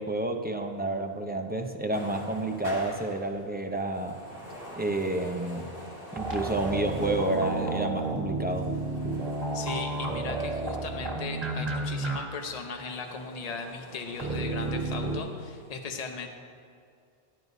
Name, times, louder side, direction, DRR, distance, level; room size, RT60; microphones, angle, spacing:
voice 1, 0.0-4.2 4.8-5.7 6.1-8.7, right 2 dB, 10° right, 4 dB, 0.5 m, -30 dB
sound 1, 1.9-11.8 12.3-15.7, equal, 60° left, 2.4 m, -45 dB
sound 2, 6.2-12.2 12.4-12.5 14.2-15.2, right 2 dB, 40° right, 1.8 m, -31 dB
voice 2, 9.5-16.3, left 4 dB, 40° left, 4 dB, 0.9 m, -37 dB
14.0 x 11.0 x 2.7 m, 2.4 s
omnidirectional pair, 1.0 m